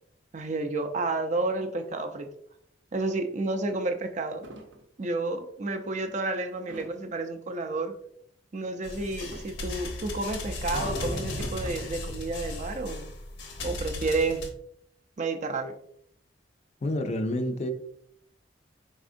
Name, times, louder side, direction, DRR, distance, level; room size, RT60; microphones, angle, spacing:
voice 1, 0.3-2.3 2.9-4.4 5.0-7.9 8.5-13.1 13.6-14.4 15.2-15.7, right 2 dB, 40° right, 0.4 m, -30 dB
sound 1, 3.2-3.3 3.9-4.0 4.4-4.8 6.7-7.2 9.0-9.8 11.2-12.0, right 1 dB, 80° right, 0.7 m, -46 dB
sound 2, 8.8-14.5, left 1 dB, 80° left, 0.8 m, -35 dB
voice 2, 16.8-17.7, left 1 dB, 35° left, 0.4 m, -28 dB
4.2 x 3.6 x 2.6 m
head